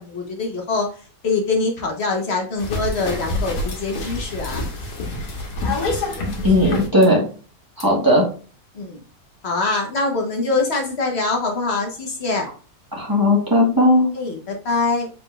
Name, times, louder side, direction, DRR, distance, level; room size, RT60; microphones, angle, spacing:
voice 1, 0.0-4.7 8.7-9.0 9.4-12.5 14.1-15.1, left 3 dB, 45° left, 1 dB, 1.4 m, -24 dB
sound 1, 2.6-7.1 7.8-7.9, left 2 dB, 75° left, 1.7 m, -27 dB
voice 2, 6.4-7.2 7.8-8.2 12.9-14.1, left 1 dB, 15° right, -3 dB, 1.4 m, -16 dB
5.2 x 4.1 x 2.5 m, 0.38 s
omnidirectional pair, 1.6 m